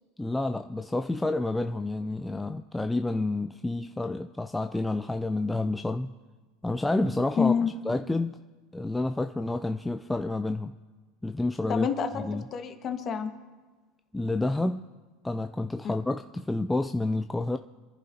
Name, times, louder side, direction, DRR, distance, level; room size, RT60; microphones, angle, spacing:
voice 1, 0.2-6.1 6.6-7.5 7.8-8.4 8.7-10.7 11.2-11.9 12.2-12.4 14.1-14.9 15.2-17.6, left 2 dB, 10° left, 0.4 m, -29 dB
voice 2, 7.4-7.7 11.7-13.3 15.8-15.9, left 6 dB, 40° left, 1.5 m, -28 dB
26.5 x 10.5 x 2.8 m
supercardioid pair, 115°, 0 cm